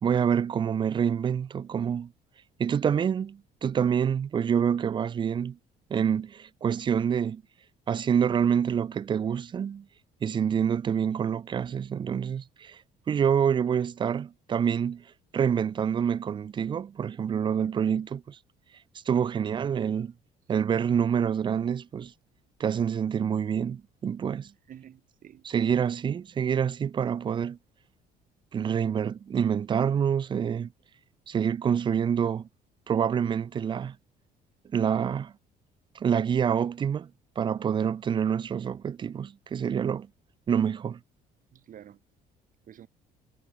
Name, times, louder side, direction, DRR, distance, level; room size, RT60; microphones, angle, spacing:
voice 1, 0.0-2.1 2.6-5.6 5.9-7.4 7.9-9.8 10.2-12.8 13.1-15.0 15.3-18.4 19.1-20.1 20.5-22.1 22.6-24.5 25.4-27.6 28.5-30.7 31.3-32.5 32.9-34.0 34.7-35.3 36.0-37.1 37.4-40.1 40.5-41.0, right 8 dB, 30° right, 0.4 m, -27 dB
voice 2, 24.7-25.4 41.5-42.0 42.7-42.9, right 10 dB, 55° right, 3.7 m, -49 dB
cardioid pair, 110°, 17 cm